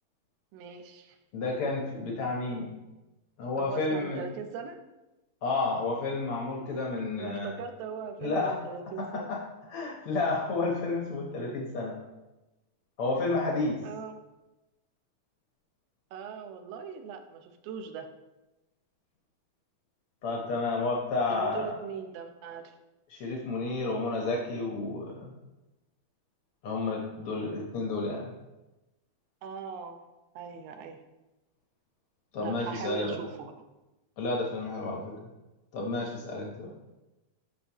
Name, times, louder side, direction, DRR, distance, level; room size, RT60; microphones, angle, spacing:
voice 1, 0.5-1.2 3.6-4.8 7.2-9.3 13.5-14.2 16.1-18.1 21.3-22.7 29.4-30.0 30.4-31.0 32.4-33.6, right 6 dB, 85° right, 6 dB, 2.8 m, -40 dB
voice 2, 1.3-2.8 3.4-4.2 5.4-7.5 8.2-8.6 9.0-9.4 9.7-11.9 13.0-13.8 20.2-21.7 23.1-25.3 26.6-28.3 32.3-33.2 34.2-35.1 35.7-36.7, left 3 dB, 90° left, -1 dB, 1.2 m, -31 dB
13.5 x 6.4 x 3.0 m, 1.0 s
omnidirectional pair, 4.4 m